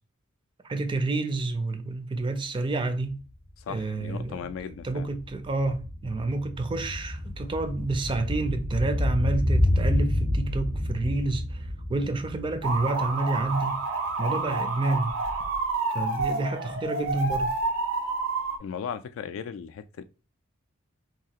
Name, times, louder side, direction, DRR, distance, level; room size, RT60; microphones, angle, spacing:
voice 1, 0.6-3.2 3.7-13.8 14.2-15.2 15.9-17.6, right 2 dB, 25° right, 0.3 m, -29 dB
sound 1, 3.1-3.2 3.5-13.8 14.1-14.2, left 1 dB, 35° left, 0.7 m, -29 dB
voice 2, 3.6-5.1 18.6-20.0, left 7 dB, 75° left, 0.3 m, -37 dB
sound 2, 12.6-18.6, right 3 dB, 75° right, 0.6 m, -29 dB
2.8 x 2.4 x 2.8 m
head